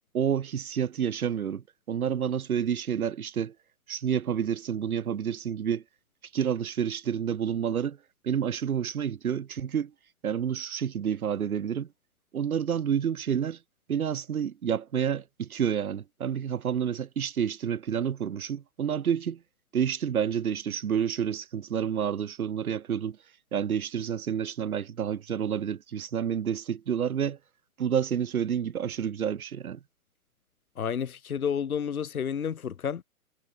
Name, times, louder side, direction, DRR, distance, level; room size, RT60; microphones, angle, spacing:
voice 1, 0.1-3.5 3.9-5.8 6.3-8.0 8.2-9.9 10.2-11.9 12.3-13.6 13.9-19.4 19.7-23.2 23.5-27.4 27.8-29.8, right 8 dB, 75° right, 1.3 m, -29 dB
voice 2, 30.7-33.0, left 7 dB, 75° left, 1.8 m, -30 dB
hypercardioid pair, 125°, 43 cm